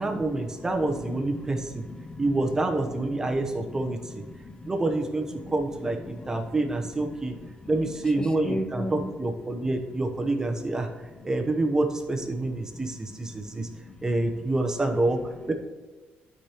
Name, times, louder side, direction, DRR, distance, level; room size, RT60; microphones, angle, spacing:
voice 1, 0.0-1.9 2.2-4.2 4.7-7.3 7.7-10.9 11.2-13.7 14.0-15.5, right 2 dB, 15° right, 4 dB, 0.9 m, -27 dB
voice 2, 0.8-2.3 3.1-4.7 5.4-5.5 5.8-9.2 13.3-14.1, left 1 dB, 20° left, 8 dB, 0.5 m, -39 dB
12.0 x 4.9 x 3.0 m, 1.3 s
cardioid pair, 135°, 4 cm